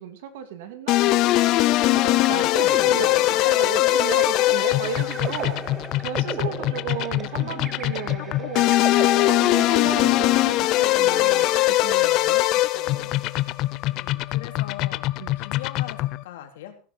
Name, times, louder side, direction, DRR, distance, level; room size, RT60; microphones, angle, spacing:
voice 1, 0.0-1.5 1.8-11.5 11.8-13.2 15.2-15.4, right 9 dB, 75° right, 8 dB, 2.5 m, -35 dB
sound 1, 0.9-16.2, left 17 dB, 40° left, 0.6 m, -21 dB
sound 2, 1.7-12.1, right 5 dB, 20° right, 0.9 m, -37 dB
voice 2, 3.3-3.8 13.9-16.8, left 11 dB, 85° left, 4 dB, 3.1 m, -39 dB
15.5 x 9.8 x 4.3 m, 0.38 s
supercardioid pair, 160°, 0 cm